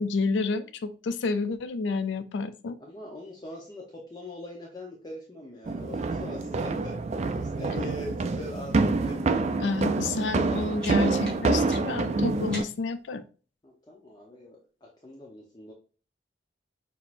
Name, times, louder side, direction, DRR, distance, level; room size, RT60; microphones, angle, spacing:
voice 1, 0.0-2.8 9.6-13.2, left 3 dB, 80° left, 0.4 m, -29 dB
voice 2, 2.9-3.8 4.1-7.0 7.3-8.7 9.0-9.5 13.6-14.6 15.0-15.7, left 1 dB, 25° left, 0.7 m, -41 dB
sound 1, 5.7-12.6, right 3 dB, 35° right, 0.3 m, -27 dB
sound 2, 10.8-13.0, equal, 5° left, 1.8 m, -46 dB
6.1 x 2.8 x 2.5 m
head